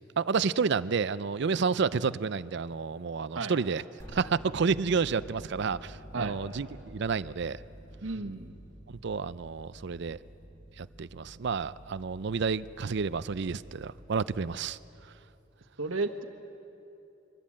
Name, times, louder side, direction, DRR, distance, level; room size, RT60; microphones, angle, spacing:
voice 1, 0.2-3.8 4.1-7.6 9.0-10.2 10.8-14.8, right 5 dB, 60° right, 16 dB, 0.5 m, -30 dB
sound 1, 4.0-15.0, equal, 15° left, 6.0 m, -49 dB
voice 2, 8.0-8.5 15.8-16.2, right 3 dB, 85° right, 5 dB, 1.4 m, -33 dB
24.0 x 19.5 x 8.6 m, 2.8 s
head